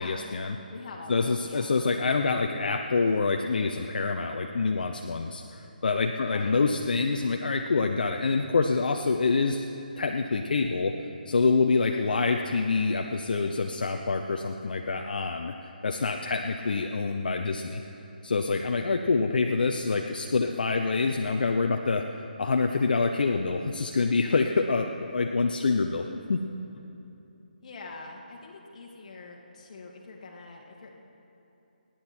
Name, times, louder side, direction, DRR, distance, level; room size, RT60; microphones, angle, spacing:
voice 1, 0.0-0.5 1.1-9.7 10.0-10.9 11.3-17.8 18.2-22.1 22.4-26.4, left 4 dB, 65° left, 4 dB, 0.8 m, -26 dB
voice 2, 0.7-1.8 6.2-6.6 27.6-30.9, left 3 dB, 45° left, -1 dB, 2.1 m, -44 dB
26.0 x 10.5 x 4.5 m, 2.9 s
hypercardioid pair, 160°, 5 cm